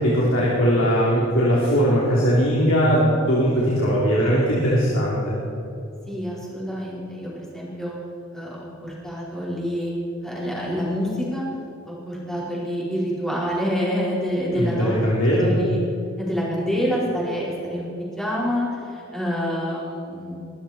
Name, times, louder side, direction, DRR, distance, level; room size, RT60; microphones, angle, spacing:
voice 1, 0.0-5.3 14.5-15.5, equal, 75° left, -7 dB, 3.5 m, -20 dB
voice 2, 6.1-7.9 8.3-9.9 10.2-11.5 11.8-14.9 15.3-15.8 16.2-20.5, equal, ahead, -7 dB, 4.6 m, -27 dB
22.5 x 12.5 x 4.4 m, 2.7 s
head